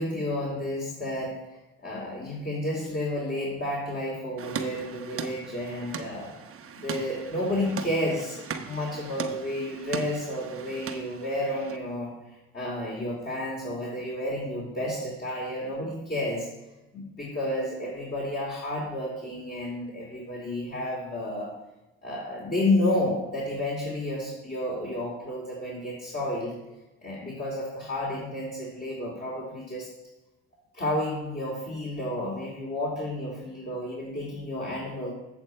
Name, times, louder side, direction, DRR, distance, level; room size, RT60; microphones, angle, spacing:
voice 1, 0.0-6.3 6.7-16.5 16.9-21.5 22.0-26.5 27.0-29.9 30.7-35.1, left 1 dB, 30° left, -4 dB, 2.7 m, -31 dB
sound 1, 4.4-11.8, right 6 dB, 45° right, 1.0 m, -38 dB
7.9 x 7.2 x 4.4 m, 1.0 s
supercardioid pair, 60°, 32 cm